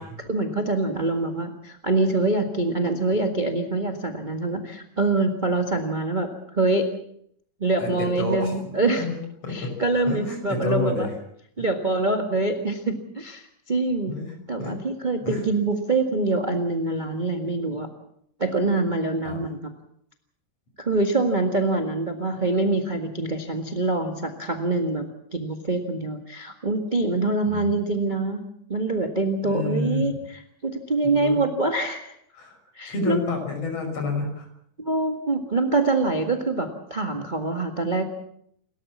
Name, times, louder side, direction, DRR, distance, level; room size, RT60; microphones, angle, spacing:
voice 1, 0.3-6.3 6.5-6.9 7.6-9.1 9.5-11.1 11.6-14.1 14.5-17.9 18.4-19.6 20.8-28.4 28.7-32.1 32.7-33.2 34.8-38.0, right 2 dB, 25° right, 4 dB, 1.1 m, -25 dB
voice 2, 7.8-9.1 9.4-9.7 10.1-11.1 14.1-14.7 15.2-15.5 19.2-19.4 27.5-27.7 29.4-30.0 31.0-31.4 32.3-32.6 32.9-34.5, left 3 dB, 45° left, 4 dB, 6.9 m, -29 dB
29.5 x 13.5 x 7.3 m, 0.70 s
omnidirectional pair, 3.7 m